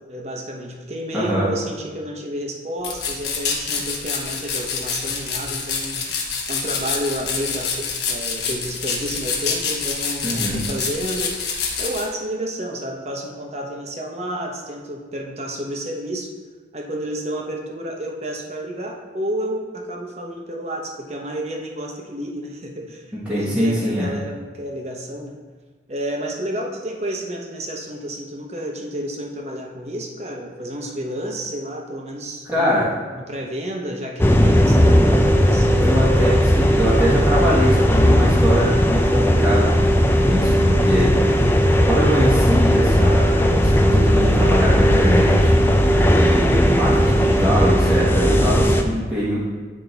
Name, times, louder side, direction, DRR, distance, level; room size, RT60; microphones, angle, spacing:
voice 1, 0.1-11.3 11.8-16.3 16.7-25.3 25.9-32.9 33.1-35.7, right 1 dB, 35° right, 0 dB, 1.0 m, -30 dB
voice 2, 1.1-1.5 10.2-10.6 23.1-24.1 32.4-32.9 35.8-49.5, equal, 5° right, -9 dB, 1.2 m, -23 dB
sound 1, 2.8-12.1, left 5 dB, 70° left, 1.1 m, -27 dB
sound 2, 34.2-48.8, equal, 10° left, 0.4 m, -16 dB
9.8 x 3.7 x 4.0 m, 1.4 s
head